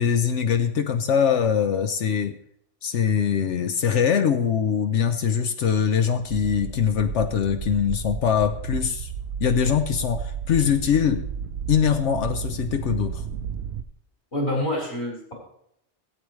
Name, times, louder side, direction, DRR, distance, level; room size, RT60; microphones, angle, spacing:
voice 1, 0.0-2.3 2.8-9.1 9.4-11.2 11.7-13.2, left 7 dB, 80° left, 7 dB, 1.0 m, -22 dB
sound 1, 6.2-13.8, right 7 dB, 65° right, 0.8 m, -33 dB
voice 2, 14.3-15.3, left 1 dB, 60° left, -3 dB, 4.7 m, -27 dB
16.5 x 8.5 x 3.2 m, 0.73 s
omnidirectional pair, 1.2 m